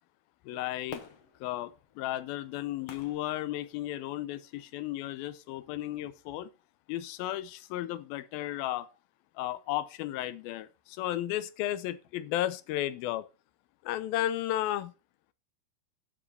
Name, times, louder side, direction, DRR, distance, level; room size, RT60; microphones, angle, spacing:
voice 1, 0.4-1.0 1.4-6.5 6.9-8.9 9.4-13.3 13.8-14.9, left 13 dB, 80° left, 2.5 m, -34 dB
Fireworks, 0.9-4.2 4.8-4.9, left 7 dB, 60° left, 1.7 m, -49 dB
12.0 x 7.5 x 4.2 m
omnidirectional pair, 4.2 m